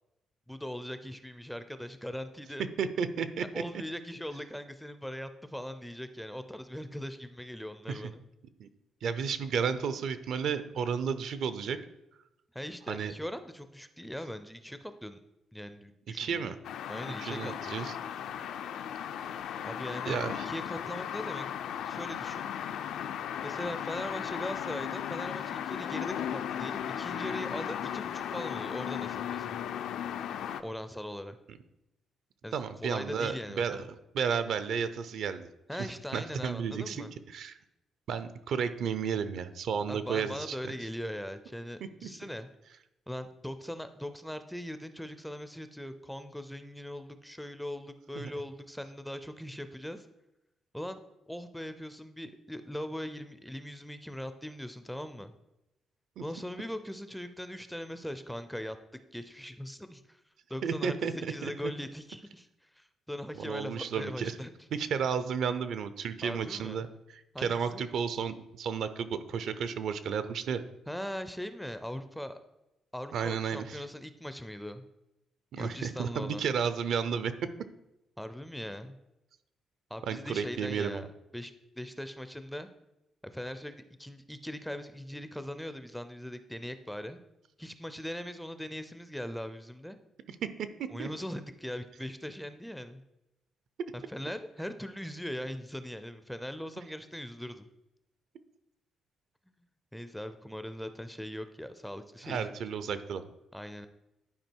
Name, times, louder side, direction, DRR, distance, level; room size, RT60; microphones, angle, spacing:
voice 1, 0.5-2.7 3.5-8.2 12.5-15.2 15.5-16.6 16.9-17.9 19.6-21.5 21.9-22.5 23.4-29.6 30.6-31.4 32.4-33.9 35.7-37.1 39.9-42.5 43.1-50.1 50.7-51.0 51.3-55.3 56.2-58.8 59.1-60.2 60.5-64.5 66.2-66.9 67.3-67.9 70.9-72.4 72.9-74.9 75.5-76.4 78.2-79.0 79.9-81.1 81.3-82.7 83.2-87.2 87.6-90.0 90.9-93.0 93.9-97.7 99.5-99.6 99.9-102.6 103.5-103.9, equal, ahead, 10 dB, 0.4 m, -40 dB
voice 2, 2.8-3.4 7.9-8.0 8.6-8.7 9.0-11.8 12.9-13.1 16.2-16.6 17.2-18.0 20.1-20.5 32.5-33.8 34.1-35.5 35.8-35.9 36.1-37.1 37.3-37.6 38.1-40.7 42.0-42.1 48.2-48.3 56.2-56.3 60.6-61.5 63.4-64.4 64.7-66.9 67.1-70.6 73.1-73.8 75.5-77.3 80.1-81.1 90.4-90.7 91.0-91.1 102.2-103.2, right 6 dB, 60° right, 12 dB, 0.6 m, -32 dB
sound 1, 16.6-30.6, left 9 dB, 75° left, 0.4 m, -36 dB
11.0 x 4.8 x 4.5 m, 0.91 s
cardioid pair, 165°, 0 cm